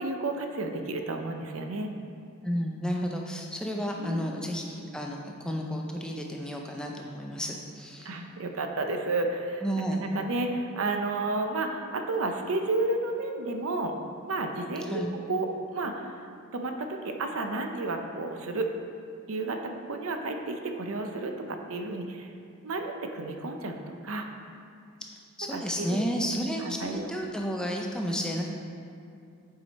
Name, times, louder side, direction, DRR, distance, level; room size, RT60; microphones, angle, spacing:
voice 1, 0.0-1.9 4.0-4.4 8.0-9.6 9.9-13.9 14.2-15.0 15.3-16.1 16.5-18.7 19.3-22.3 22.6-24.3 25.5-25.9 26.6-27.1, right 2 dB, 75° right, 4 dB, 0.6 m, -31 dB
voice 2, 2.4-8.1 9.6-10.0 14.8-15.1 25.4-28.4, equal, 5° left, 0 dB, 0.4 m, -32 dB
8.4 x 4.7 x 4.1 m, 2.5 s
head